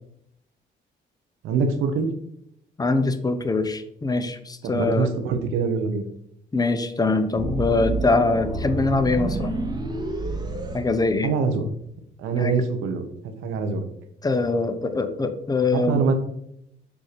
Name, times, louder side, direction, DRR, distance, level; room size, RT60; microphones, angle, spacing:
voice 1, 1.4-2.1 4.6-6.0 11.2-11.6 12.2-13.1 13.4-13.8 15.7-16.1, right 5 dB, 90° right, 6 dB, 0.9 m, -24 dB
voice 2, 2.8-5.1 6.5-9.5 10.7-11.3 12.4-12.5 14.2-16.0, left 3 dB, 20° left, 9 dB, 0.7 m, -23 dB
sound 1, 7.4-11.6, right 2 dB, 20° right, 0.9 m, -29 dB
7.0 x 2.7 x 5.0 m, 0.75 s
cardioid pair, 90°, 20 cm